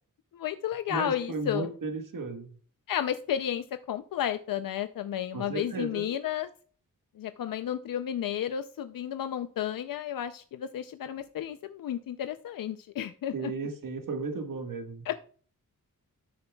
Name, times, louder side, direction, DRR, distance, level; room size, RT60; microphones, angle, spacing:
voice 1, 0.3-1.7 2.9-6.5 7.2-13.5 15.0-15.2, left 10 dB, 80° left, 10 dB, 0.5 m, -32 dB
voice 2, 0.9-2.5 5.3-6.0 13.3-15.2, right 3 dB, 75° right, 4 dB, 1.4 m, -35 dB
13.0 x 7.0 x 2.3 m, 0.43 s
wide cardioid pair, 140°, 33 cm